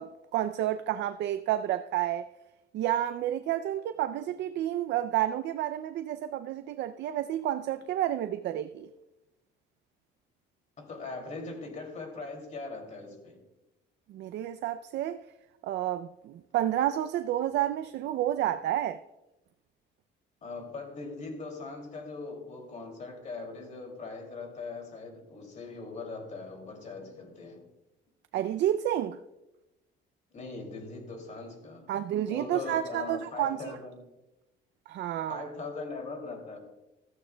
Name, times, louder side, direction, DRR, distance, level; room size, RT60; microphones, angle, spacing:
voice 1, 0.0-2.3 2.7-8.9 14.1-15.2 15.6-19.0 28.3-29.2 31.9-33.6 34.9-35.5, right 12 dB, 60° right, 0.4 m, -30 dB
voice 2, 10.8-13.4 20.4-27.7 30.3-31.9 32.3-34.1 35.3-36.6, left 3 dB, 35° left, 2.6 m, -40 dB
15.0 x 14.0 x 2.2 m
cardioid pair, 150°, 20 cm